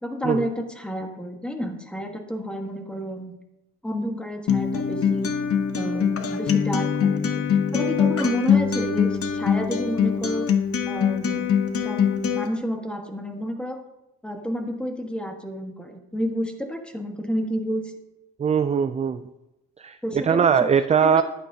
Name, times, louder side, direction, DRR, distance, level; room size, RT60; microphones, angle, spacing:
voice 1, 0.0-3.4 3.8-5.3 5.7-7.4 7.7-10.5 10.8-11.5 11.8-13.8 14.2-17.9 20.0-20.7 21.0-21.2, equal, 5° left, 4 dB, 1.4 m, -30 dB
Acoustic guitar, 4.5-12.5, left 7 dB, 50° left, 0.9 m, -23 dB
voice 2, 18.4-19.2 19.8-20.0 20.2-21.2, right 7 dB, 25° right, 11 dB, 0.3 m, -20 dB
11.5 x 9.0 x 2.8 m, 0.93 s
cardioid pair, 90°, 30 cm